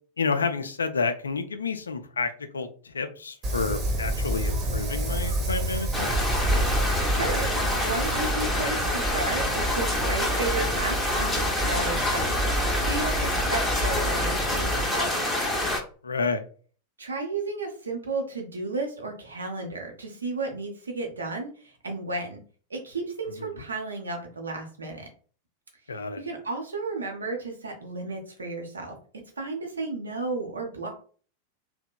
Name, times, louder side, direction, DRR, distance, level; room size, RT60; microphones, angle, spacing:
voice 1, 0.2-6.1 16.0-16.4 23.4-23.6 25.9-26.2, left 4 dB, 75° left, 0.3 m, -30 dB
Wind, 3.4-14.8, right 1 dB, 30° right, 0.7 m, -29 dB
sound 1, 5.9-15.8, left 1 dB, 5° left, 0.5 m, -27 dB
voice 2, 6.7-12.3 12.6-15.2 17.0-21.5 21.8-22.4 22.7-25.0 26.2-29.0 29.4-30.9, right 3 dB, 75° right, 0.7 m, -33 dB
2.8 x 2.0 x 2.2 m
figure-of-eight pair, 90°, 0 cm